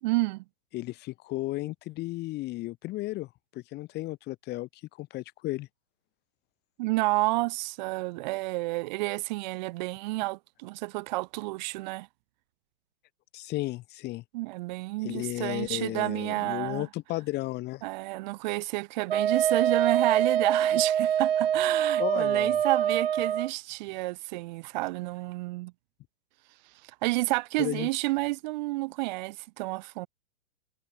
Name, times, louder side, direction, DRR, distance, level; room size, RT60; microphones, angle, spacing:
voice 1, 0.0-0.4 6.8-12.1 14.3-16.9 17.8-25.7 26.8-30.1, right 22 dB, 45° right, 3.5 m, -30 dB
voice 2, 0.7-4.7 5.0-5.7 13.3-14.2 15.0-17.8 22.0-22.6 27.6-27.9, left 18 dB, 35° left, 6.8 m, -34 dB
Wind instrument woodwind instrument, 19.1-23.5, right 9 dB, 70° right, 6.7 m, -25 dB
hypercardioid pair, 120°, 31 cm